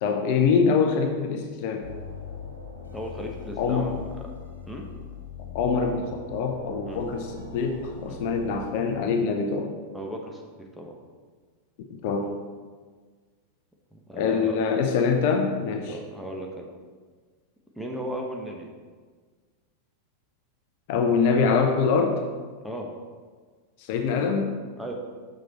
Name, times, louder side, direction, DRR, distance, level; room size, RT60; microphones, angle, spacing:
voice 1, 0.0-1.9 3.6-3.9 5.5-9.7 11.9-12.3 14.1-16.0 20.9-22.2 23.9-24.5, left 5 dB, 50° left, 4 dB, 0.7 m, -24 dB
sound 1, 1.8-8.7, left 4 dB, 75° left, 0.9 m, -41 dB
voice 2, 2.9-4.0 4.7-4.8 6.8-7.0 8.1-8.2 9.9-10.9 13.9-14.6 15.9-16.7 17.7-18.7 22.6-23.0 24.8-24.9, equal, ahead, 0 dB, 1.1 m, -36 dB
6.3 x 6.1 x 4.1 m, 1.5 s
figure-of-eight pair, 90°, 0 cm